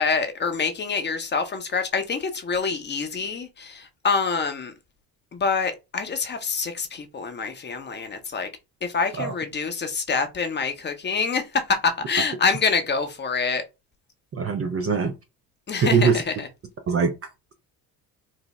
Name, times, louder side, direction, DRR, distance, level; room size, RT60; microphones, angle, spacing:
voice 1, 0.0-4.7 5.3-8.5 8.8-13.6 15.7-16.5, left 5 dB, 20° left, 0.7 m, -26 dB
voice 2, 14.3-15.1 15.8-16.2 16.9-17.1, right 5 dB, 30° right, 0.5 m, -22 dB
2.7 x 2.0 x 3.1 m
hypercardioid pair, 55°, 49 cm